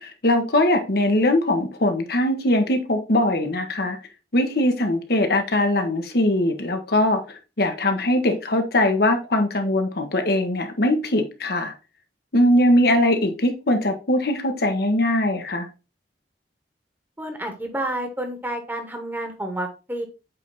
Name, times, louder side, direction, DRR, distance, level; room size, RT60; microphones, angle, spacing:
voice 1, 0.0-4.0 4.3-11.7 12.3-15.7, left 1 dB, 60° left, 1.2 m, -21 dB
voice 2, 17.2-20.0, right 1 dB, 10° right, 1.3 m, -30 dB
8.2 x 3.5 x 4.0 m
head